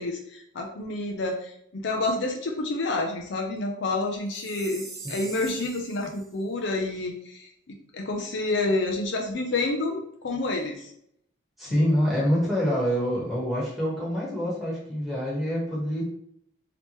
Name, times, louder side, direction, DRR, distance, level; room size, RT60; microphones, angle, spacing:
voice 1, 0.0-10.9 11.7-11.9, left 2 dB, 60° left, 2 dB, 0.5 m, -29 dB
Chime, 4.3-6.3, right 3 dB, 50° right, 0.9 m, -42 dB
voice 2, 11.6-16.0, equal, ahead, -7 dB, 1.3 m, -26 dB
3.4 x 2.9 x 3.0 m, 0.70 s
head